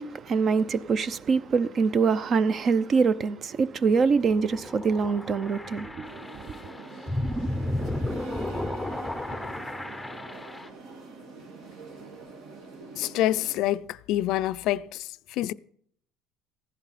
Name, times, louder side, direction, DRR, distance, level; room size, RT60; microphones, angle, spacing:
voice 1, 0.0-6.1 6.5-6.6, right 5 dB, 40° right, 0.6 m, -24 dB
sound 1, 3.8-10.7, left 1 dB, 5° left, 0.7 m, -33 dB
sound 2, 6.0-13.6, right 3 dB, 70° right, 2.2 m, -44 dB
voice 2, 12.9-15.5, left 14 dB, 65° left, 0.4 m, -27 dB
15.0 x 11.0 x 4.2 m
cardioid pair, 115°, 0 cm